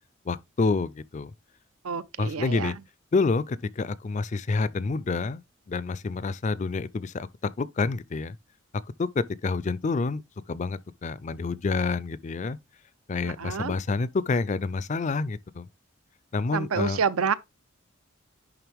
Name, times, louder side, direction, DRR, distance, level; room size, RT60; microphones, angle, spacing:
voice 1, 0.3-1.3 2.2-2.8 3.1-5.4 5.7-7.3 7.6-8.4 9.0-10.2 10.5-12.6 13.1-15.7 16.3-17.0, left 4 dB, 35° left, 0.4 m, -28 dB
voice 2, 1.8-2.7 13.2-13.8 16.5-17.3, right 6 dB, 85° right, 0.6 m, -28 dB
10.5 x 3.7 x 3.4 m
head